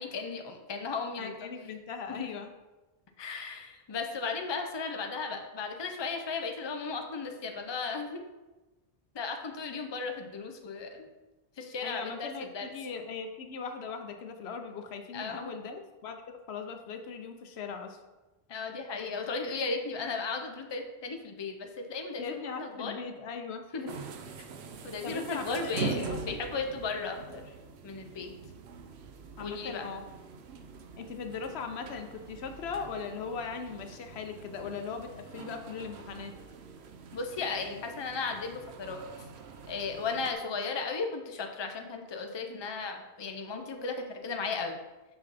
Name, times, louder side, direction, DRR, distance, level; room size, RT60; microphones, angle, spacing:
voice 1, 0.0-1.5 2.1-2.3 3.2-8.2 9.1-11.1 11.6-12.7 15.1-15.5 18.5-23.0 23.7-23.8 24.8-27.5 27.8-28.3 29.4-29.8 37.1-39.1 39.7-44.8, left 4 dB, 30° left, 4 dB, 0.6 m, -35 dB
voice 2, 1.2-2.5 11.8-18.0 22.2-23.9 25.0-26.2 29.4-30.1 31.0-36.3, left 5 dB, 85° left, 6 dB, 1.0 m, -39 dB
sound 1, 23.9-40.3, right 4 dB, 85° right, 0.9 m, -43 dB
5.9 x 5.2 x 4.0 m, 1.1 s
omnidirectional pair, 1.1 m